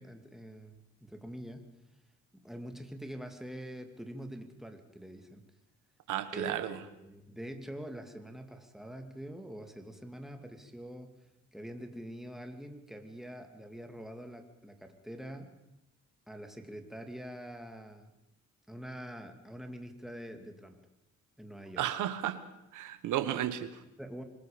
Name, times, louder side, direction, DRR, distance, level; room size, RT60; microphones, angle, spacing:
voice 1, 0.0-1.7 2.3-5.4 6.3-11.2 11.5-15.5 16.3-18.1 18.7-20.8 21.4-21.8 24.0-24.2, equal, ahead, 4 dB, 2.7 m, -45 dB
voice 2, 6.1-6.8 21.8-22.4 22.7-23.8, right 11 dB, 85° right, 11 dB, 1.4 m, -33 dB
25.5 x 21.0 x 5.2 m, 0.86 s
cardioid pair, 90°, 30 cm